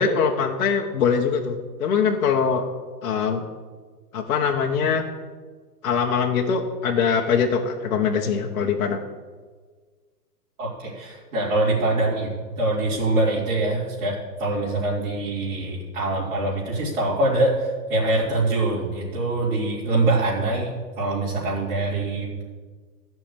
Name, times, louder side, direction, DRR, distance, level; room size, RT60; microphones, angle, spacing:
voice 1, 0.0-2.6 3.0-3.4 4.1-5.0 5.8-9.0, left 6 dB, 60° left, 0 dB, 1.5 m, -22 dB
voice 2, 10.6-12.3 12.6-22.4, right 2 dB, 55° right, -8 dB, 4.1 m, -24 dB
14.0 x 6.3 x 8.9 m, 1.5 s
hypercardioid pair, 170°, 48 cm